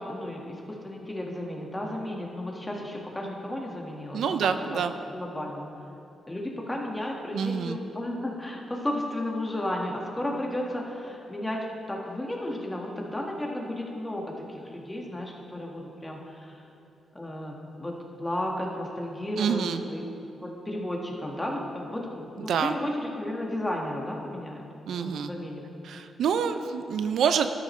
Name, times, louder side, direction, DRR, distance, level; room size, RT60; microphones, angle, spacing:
voice 1, 0.0-5.7 6.3-16.6 17.1-20.0 20.4-24.7 25.0-25.6, left 1 dB, 15° left, -1 dB, 1.7 m, -33 dB
voice 2, 4.1-4.9 7.3-7.8 19.4-19.8 22.5-22.8 24.9-25.3 25.8-27.5, right 7 dB, 80° right, 9 dB, 0.4 m, -27 dB
12.5 x 10.5 x 3.2 m, 2.8 s
cardioid pair, 75°, 0 cm